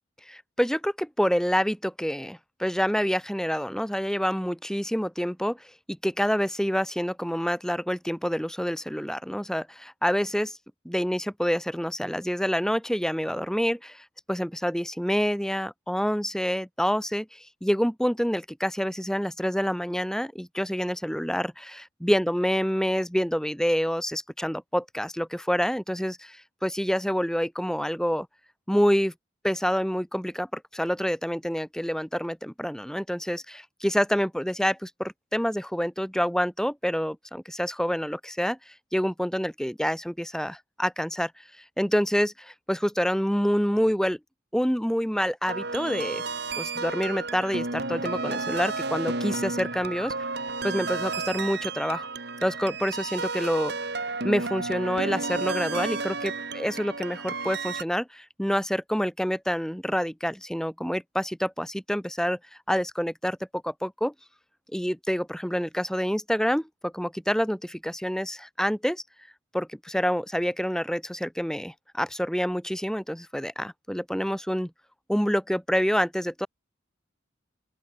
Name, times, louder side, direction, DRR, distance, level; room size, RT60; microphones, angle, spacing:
voice 1, 0.3-10.6 10.8-28.3 28.7-29.1 29.4-41.3 41.8-44.2 44.5-46.2 46.5-50.1 50.6-52.1 52.4-62.4 62.7-63.4 63.6-64.1 64.7-69.0 69.5-74.7 75.1-76.5, equal, 5° left, 5.2 m, -27 dB
sound 1, 45.5-57.8, right 3 dB, 60° right, 3.3 m, -32 dB
open air
head